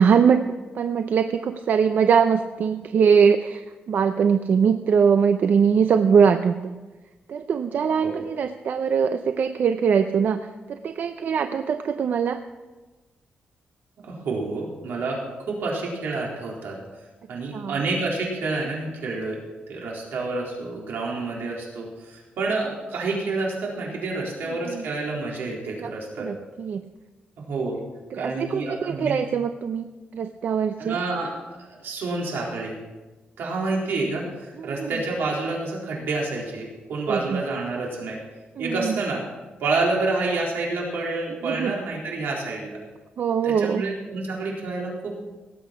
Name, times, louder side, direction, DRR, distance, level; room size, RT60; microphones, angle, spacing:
voice 1, 0.0-6.8 7.3-12.4 17.5-17.8 24.7-24.8 25.8-25.9 26.2-26.8 28.1-31.0 34.6-35.0 37.1-37.4 38.6-39.0 41.4-41.7 43.2-43.9, right 6 dB, 60° right, 9 dB, 0.6 m, -22 dB
voice 2, 14.0-15.2 15.5-16.7 17.3-19.4 19.7-26.3 27.4-27.8 28.1-29.1 30.8-31.3 31.6-32.8 33.4-38.2 38.6-39.2 39.6-42.8 43.4-45.1, right 3 dB, 85° right, -3 dB, 4.1 m, -28 dB
18.0 x 8.2 x 5.8 m, 1.2 s
cardioid pair, 120°, 3 cm